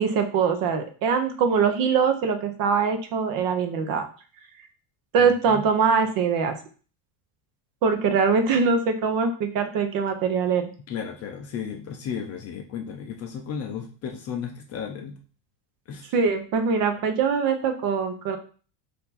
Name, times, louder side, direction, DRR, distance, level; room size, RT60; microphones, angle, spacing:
voice 1, 0.0-4.1 5.1-6.6 7.8-10.7 16.1-18.4, right 5 dB, 45° right, 7 dB, 0.7 m, -23 dB
voice 2, 5.2-5.6 10.9-15.2 15.9-16.1, left 7 dB, 35° left, 4 dB, 0.4 m, -34 dB
4.4 x 2.7 x 4.0 m, 0.39 s
cardioid pair, 155°, 48 cm